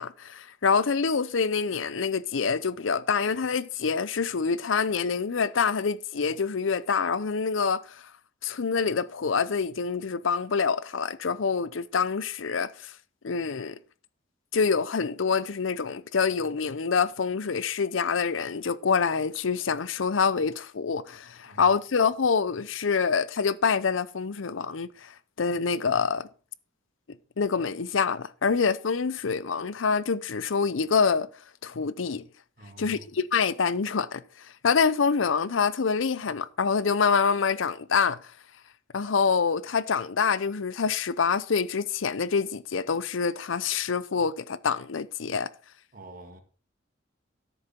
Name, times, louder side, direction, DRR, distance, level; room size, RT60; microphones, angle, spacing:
voice 1, 0.0-8.0 8.4-12.9 13.2-13.8 14.5-26.3 27.4-31.3 31.6-32.2 32.8-38.2 38.9-45.5, left 5 dB, 80° left, 0.6 m, -26 dB
voice 2, 32.6-33.0 45.9-46.4, right 2 dB, 50° right, 1.8 m, -46 dB
13.0 x 7.0 x 4.4 m
head